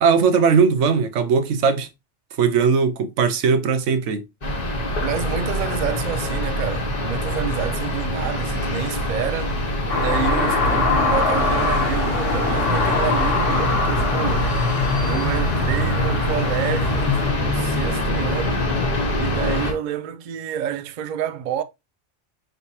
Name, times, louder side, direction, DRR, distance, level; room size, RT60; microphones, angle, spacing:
voice 1, 0.0-1.9 2.4-4.2, right 5 dB, 80° right, 1.0 m, -19 dB
sound 1, 4.4-19.7, left 1 dB, 35° left, 1.1 m, -24 dB
voice 2, 5.0-9.5 9.9-14.5 15.0-18.7 19.2-21.6, right 9 dB, 60° right, 0.5 m, -28 dB
sound 2, 9.9-17.3, left 3 dB, 80° left, 1.4 m, -23 dB
4.9 x 3.3 x 2.7 m
omnidirectional pair, 1.2 m